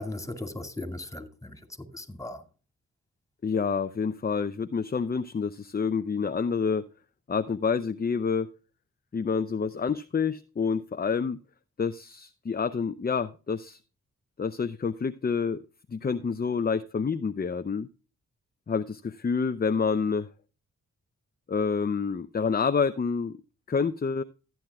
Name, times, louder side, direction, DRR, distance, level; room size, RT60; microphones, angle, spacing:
voice 1, 0.0-2.4, left 1 dB, 10° left, 2.3 m, -38 dB
voice 2, 3.4-6.8 7.3-8.5 9.1-11.4 11.8-13.8 14.4-15.6 15.9-17.9 18.7-20.3 21.5-23.4 23.7-24.2, left 5 dB, 30° left, 0.6 m, -28 dB
15.0 x 9.3 x 2.3 m
cardioid pair, 50°, 31 cm